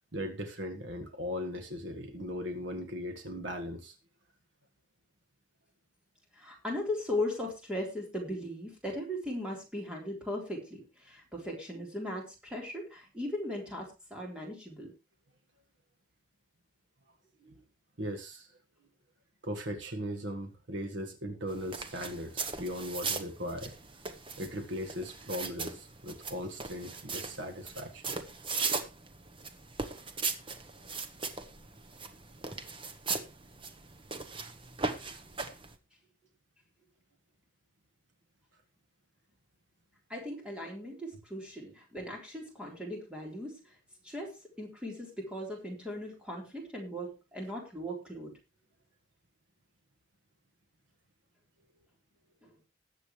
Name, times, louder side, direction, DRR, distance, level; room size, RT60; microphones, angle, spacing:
voice 1, 0.1-4.0 17.4-17.6 18.0-18.5 19.4-23.7 24.4-28.2, equal, 65° right, 5 dB, 1.6 m, -38 dB
voice 2, 6.3-14.9 40.1-43.7 44.0-48.3 52.4-52.5, left 1 dB, 5° right, -1 dB, 3.8 m, -38 dB
sound 1, 21.5-35.8, right 4 dB, 25° right, 1.0 m, -38 dB
20.0 x 7.6 x 3.2 m, 0.27 s
head